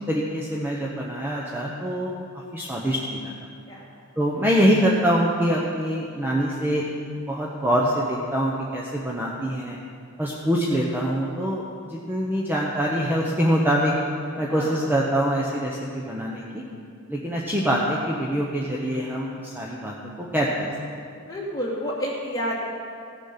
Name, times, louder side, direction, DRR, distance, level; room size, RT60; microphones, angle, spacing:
voice 1, 0.1-3.3 4.2-6.8 7.3-9.8 10.2-13.9 14.4-16.6 17.1-20.5, equal, 10° right, -4 dB, 0.9 m, -24 dB
voice 2, 21.3-22.5, equal, 15° left, -6 dB, 2.7 m, -29 dB
16.0 x 7.1 x 5.7 m, 2.3 s
head